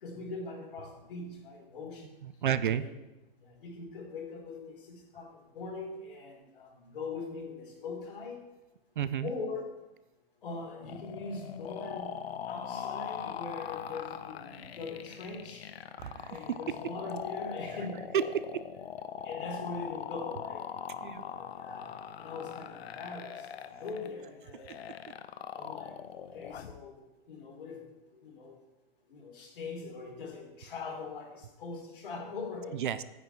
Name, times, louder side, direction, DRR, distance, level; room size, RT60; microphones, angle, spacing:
voice 1, 0.0-2.0 2.7-2.9 3.6-5.3 5.5-8.4 9.2-9.7 10.4-12.1 12.5-15.6 16.3-18.4 19.2-21.9 22.2-23.4 23.8-24.7 25.5-26.9 27.3-27.8 28.2-28.6 29.1-32.8, left 3 dB, 60° left, -2 dB, 3.8 m, -41 dB
voice 2, 2.2-2.8 9.0-9.3 16.0-16.4 18.1-18.2 21.0-21.3 32.7-33.0, right 9 dB, 55° right, 14 dB, 0.5 m, -30 dB
sound 1, 10.8-26.8, left 8 dB, 80° left, 0.8 m, -41 dB
9.4 x 8.3 x 4.5 m, 1.0 s
hypercardioid pair, 175°, 30 cm